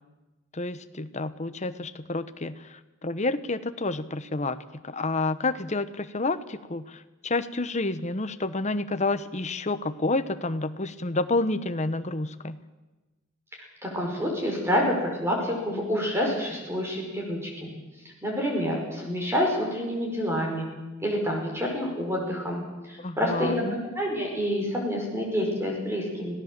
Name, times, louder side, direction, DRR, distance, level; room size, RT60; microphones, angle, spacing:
voice 1, 0.5-12.6 23.0-23.8, left 2 dB, 35° left, 11 dB, 1.1 m, -29 dB
voice 2, 13.8-17.7 18.2-20.6 21.0-26.3, equal, 15° right, 0 dB, 5.1 m, -28 dB
26.0 x 17.5 x 7.6 m, 1.1 s
head